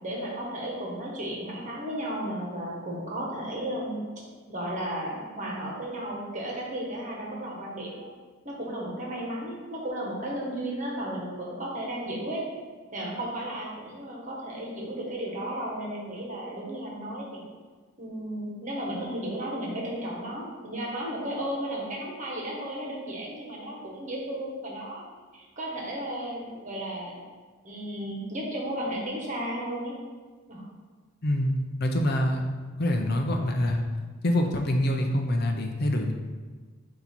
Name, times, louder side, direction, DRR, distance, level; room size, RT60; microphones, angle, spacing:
voice 1, 0.0-4.0 4.5-8.1 8.4-12.4 12.9-17.5 18.0-25.0 25.3-27.1 27.6-30.0 30.5-30.6, right 1 dB, 35° right, -3 dB, 1.3 m, -34 dB
voice 2, 31.2-31.5 31.8-32.4 32.8-33.8 34.2-36.1, left 1 dB, 50° left, 3 dB, 0.6 m, -25 dB
7.6 x 2.8 x 4.5 m, 1.4 s
head